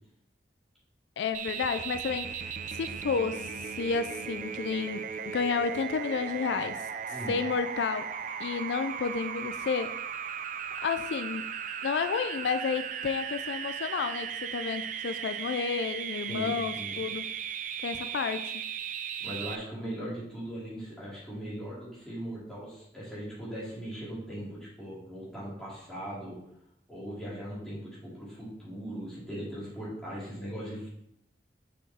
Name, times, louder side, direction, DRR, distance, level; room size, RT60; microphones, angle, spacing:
voice 1, 1.2-6.8 7.3-8.1 8.4-10.0 10.8-11.5 11.8-17.2 17.8-18.6, left 5 dB, 75° left, 10 dB, 0.3 m, -31 dB
sound 1, 1.3-19.6, right 7 dB, 45° right, 0.4 m, -37 dB
voice 2, 16.3-17.1 19.2-26.4 26.9-30.9, right 1 dB, 5° left, -8 dB, 2.8 m, -39 dB
6.3 x 5.6 x 3.5 m, 0.77 s
head